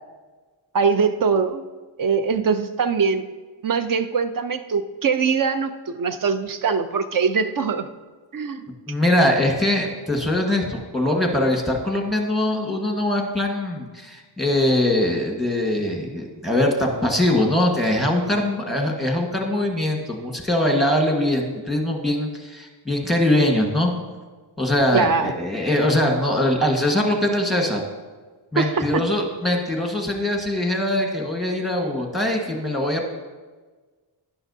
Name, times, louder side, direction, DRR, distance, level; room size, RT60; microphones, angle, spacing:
voice 1, 0.7-1.6 2.0-3.2 3.6-7.9 8.3-8.6 24.9-25.3 28.6-29.0, right 5 dB, 50° right, 10 dB, 0.6 m, -22 dB
voice 2, 8.9-23.9 24.6-27.8 28.5-33.1, left 1 dB, ahead, 1 dB, 1.4 m, -22 dB
11.5 x 11.0 x 2.7 m, 1.3 s
wide cardioid pair, 150°, 44 cm